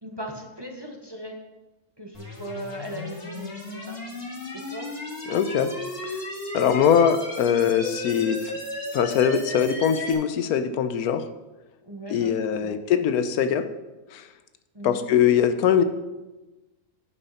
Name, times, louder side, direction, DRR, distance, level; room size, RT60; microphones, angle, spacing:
voice 1, 0.0-1.4 2.0-4.0 4.7-4.9 6.6-6.8 11.8-12.3 12.6-12.8 14.7-15.1, right 1 dB, 20° right, 1 dB, 0.8 m, -38 dB
sound 1, 2.1-10.1, left 2 dB, 40° left, 2.2 m, -35 dB
voice 2, 5.3-5.7 6.5-8.5 8.9-11.2 12.1-13.7 14.1-14.2 14.8-15.8, left 8 dB, 90° left, 10 dB, 1.2 m, -22 dB
8.6 x 6.5 x 5.6 m, 1.1 s
omnidirectional pair, 1.5 m